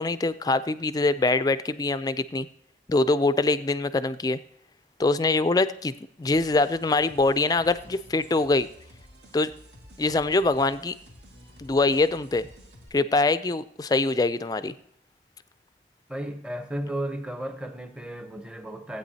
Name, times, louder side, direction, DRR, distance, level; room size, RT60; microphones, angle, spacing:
voice 1, 0.0-2.5 2.9-4.4 5.0-5.9 6.2-8.7 9.3-9.5 10.0-10.9 11.6-12.5 12.9-14.7, left 3 dB, 20° left, 14 dB, 0.3 m, -23 dB
sound 1, 6.2-12.9, equal, 80° right, 2.0 m, -51 dB
voice 2, 16.1-19.0, right 1 dB, 5° right, 7 dB, 0.7 m, -34 dB
16.5 x 8.7 x 2.8 m, 0.66 s
head